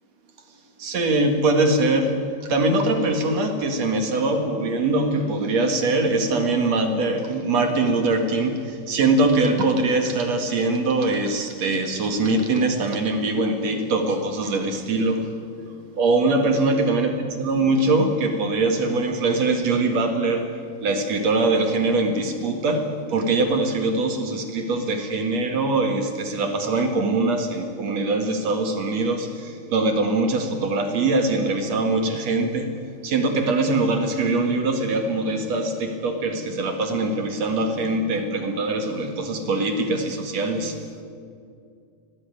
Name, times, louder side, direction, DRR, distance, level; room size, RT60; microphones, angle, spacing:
voice 1, 0.8-15.4 15.9-17.1 17.4-40.9, right 2 dB, 50° right, 5 dB, 2.4 m, -22 dB
24.0 x 17.0 x 9.6 m, 2.4 s
omnidirectional pair, 4.9 m